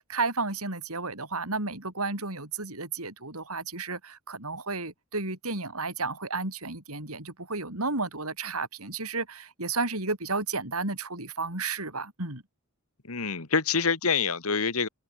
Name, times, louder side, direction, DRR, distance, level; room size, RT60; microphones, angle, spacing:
voice 1, 0.0-12.4, right 3 dB, 80° right, 7.6 m, -32 dB
voice 2, 13.1-14.9, left 5 dB, 75° left, 2.0 m, -26 dB
head